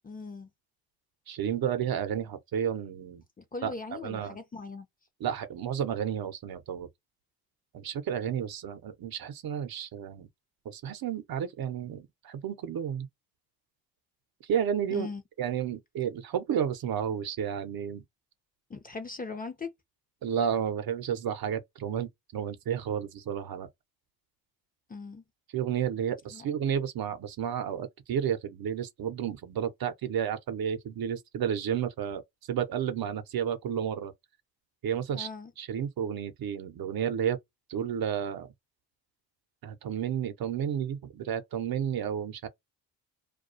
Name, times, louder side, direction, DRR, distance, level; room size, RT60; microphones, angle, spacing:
voice 1, 0.0-0.5 3.4-4.9 14.9-15.2 18.7-19.7 24.9-25.2 26.3-26.4 35.1-35.5, left 4 dB, 20° left, 0.6 m, -39 dB
voice 2, 1.3-3.2 3.6-4.4 5.2-6.9 7.7-10.3 10.6-13.1 14.5-15.1 15.4-18.0 20.2-23.7 25.5-32.2 32.5-34.1 34.8-35.3 35.6-37.4 37.7-38.5 39.6-42.5, right 8 dB, 55° right, 0.8 m, -31 dB
2.4 x 2.3 x 2.6 m
supercardioid pair, 65°, 44 cm